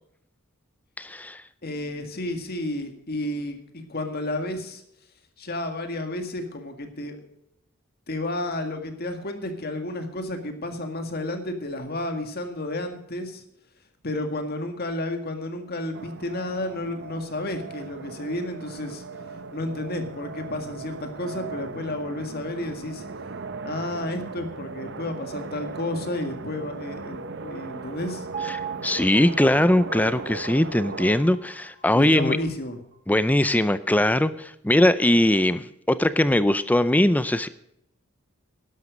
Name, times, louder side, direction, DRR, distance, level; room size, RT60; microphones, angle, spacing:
voice 1, 1.0-1.4 28.5-32.4 33.1-37.5, left 1 dB, 5° left, 14 dB, 0.5 m, -21 dB
voice 2, 1.6-4.8 5.4-7.2 8.1-13.4 14.0-19.0 19.5-23.1 23.6-28.3 31.9-32.8, left 1 dB, 45° left, 6 dB, 2.0 m, -31 dB
sound 1, 15.9-31.1, right 4 dB, 55° right, 0.9 m, -38 dB
Piano, 28.3-32.4 32.9-33.0, right 8 dB, 35° right, 1.9 m, -39 dB
12.0 x 11.0 x 5.1 m, 0.76 s
head